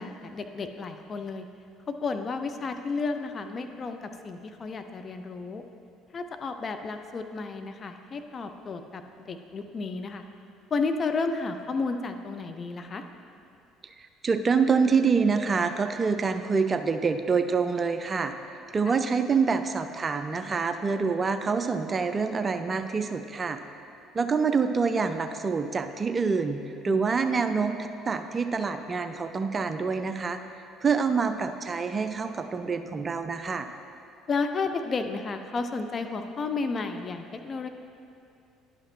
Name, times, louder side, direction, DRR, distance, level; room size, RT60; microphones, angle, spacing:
voice 1, 0.0-1.5 1.9-5.6 6.1-10.2 10.7-13.0 18.9-19.0 26.8-27.4 34.3-37.7, left 4 dB, 40° left, 7 dB, 0.5 m, -32 dB
voice 2, 14.2-18.3 18.7-23.6 24.1-30.4 30.8-33.7, right 5 dB, 30° right, 9 dB, 0.4 m, -26 dB
10.5 x 5.7 x 3.1 m, 2.6 s
hypercardioid pair, 55°, 0 cm